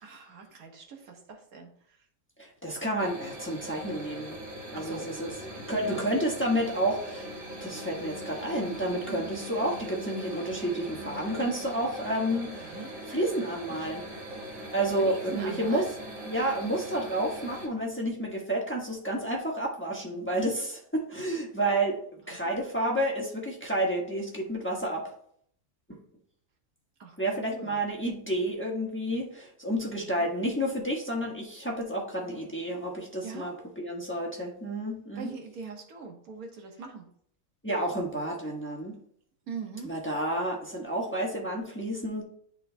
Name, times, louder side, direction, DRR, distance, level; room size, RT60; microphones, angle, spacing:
voice 1, 0.0-1.7 4.7-5.1 5.8-6.0 9.1-9.3 12.6-12.9 15.0-15.9 22.3-22.7 27.0-27.2 27.4-27.8 29.9-30.3 33.2-33.5 35.1-37.0 39.5-39.9, right 5 dB, 90° right, 2 dB, 1.6 m, -42 dB
voice 2, 2.4-4.4 4.7-5.3 5.7-7.3 7.6-12.8 13.1-14.0 14.7-15.9 16.2-22.0 22.3-25.0 27.2-35.3 37.6-39.0 39.8-42.2, right 1 dB, 10° left, -2 dB, 1.1 m, -30 dB
sound 1, 3.0-17.7, equal, 65° right, 1.9 m, -41 dB
11.5 x 3.9 x 2.2 m, 0.64 s
omnidirectional pair, 1.5 m